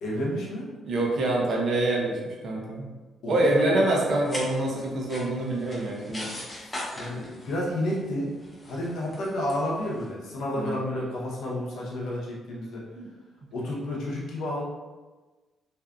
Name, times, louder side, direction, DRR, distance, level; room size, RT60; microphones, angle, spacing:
voice 1, 0.0-0.7 3.2-3.8 6.5-8.3 8.6-12.8 13.5-14.6, left 1 dB, 75° left, -4 dB, 0.7 m, -31 dB
voice 2, 0.8-2.9 3.3-6.3 10.5-10.8 12.9-13.1, right 2 dB, 60° right, -2 dB, 0.6 m, -26 dB
sound 1, 4.2-10.1, left 1 dB, 20° left, 0.7 m, -40 dB
2.6 x 2.3 x 2.3 m, 1.3 s
cardioid pair, 90°, 0 cm